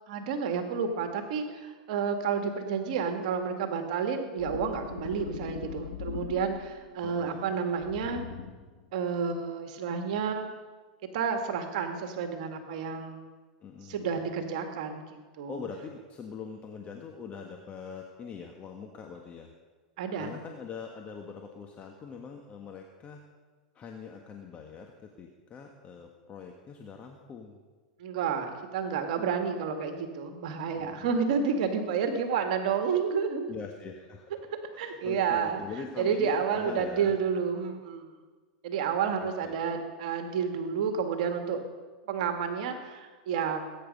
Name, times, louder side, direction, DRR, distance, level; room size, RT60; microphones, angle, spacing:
voice 1, 0.1-8.3 8.9-10.5 11.1-13.2 13.8-15.6 20.0-20.4 28.0-33.5 34.8-35.6 36.0-38.1 38.6-41.6 42.1-43.6, right 6 dB, 65° right, 5 dB, 1.8 m, -30 dB
sound 1, 4.4-6.9 7.8-8.8, left 8 dB, 75° left, 2.0 m, -41 dB
voice 2, 7.0-7.5 13.6-14.1 15.5-19.5 20.1-23.2 23.7-27.6 30.7-31.2 33.5-34.3 34.7-37.1 39.2-39.6, left 6 dB, 30° left, 2 dB, 1.5 m, -43 dB
20.5 x 9.5 x 5.4 m, 1.4 s
hypercardioid pair, 115°, 4 cm